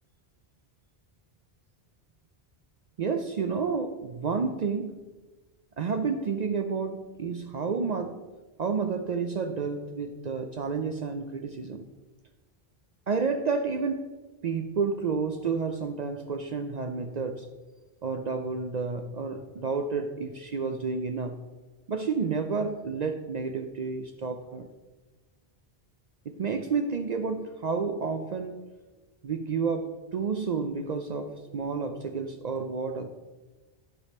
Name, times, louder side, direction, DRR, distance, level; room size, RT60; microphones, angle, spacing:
voice 1, 3.0-5.0 5.8-8.2 8.6-11.9 13.1-14.1 14.4-17.5 18.0-21.4 21.9-24.7 26.3-28.6 29.2-33.1, right 5 dB, 50° right, 0.5 m, -30 dB
12.5 x 5.0 x 4.2 m
omnidirectional pair, 1.0 m